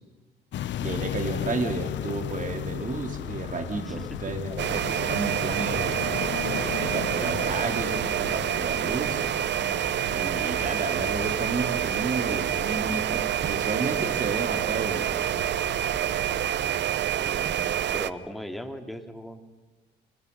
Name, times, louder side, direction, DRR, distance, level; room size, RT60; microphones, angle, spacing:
sound 1, 0.5-16.8, left 11 dB, 70° left, 0.8 m, -36 dB
voice 1, 0.8-6.1 6.8-9.3 10.1-15.2, right 3 dB, 40° right, 5 dB, 3.5 m, -32 dB
voice 2, 3.9-4.3 17.2-19.5, equal, ahead, 5 dB, 2.9 m, -39 dB
sound 2, 4.6-18.1, right 10 dB, 65° right, 0.9 m, -27 dB
29.0 x 25.0 x 5.5 m, 1.2 s
cardioid pair, 90°, 20 cm